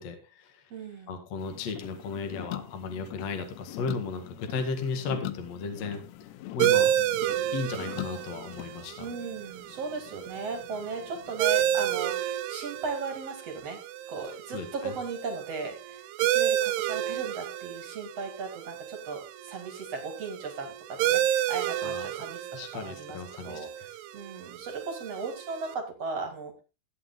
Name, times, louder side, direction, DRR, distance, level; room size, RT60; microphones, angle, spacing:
voice 1, 0.0-0.6 1.1-6.0 6.5-7.1 7.5-9.1 14.5-14.9 21.8-22.1 22.5-23.6, left 4 dB, 55° left, 5 dB, 1.8 m, -35 dB
voice 2, 0.7-1.2 8.6-13.8 14.1-23.2 23.4-26.6, right 4 dB, 45° right, 4 dB, 2.1 m, -37 dB
sound 1, 1.4-12.0, left 14 dB, 85° left, 2.5 m, -43 dB
sound 2, 6.6-25.7, right 12 dB, 80° right, 3.1 m, -31 dB
16.0 x 9.1 x 3.8 m, 0.31 s
omnidirectional pair, 5.9 m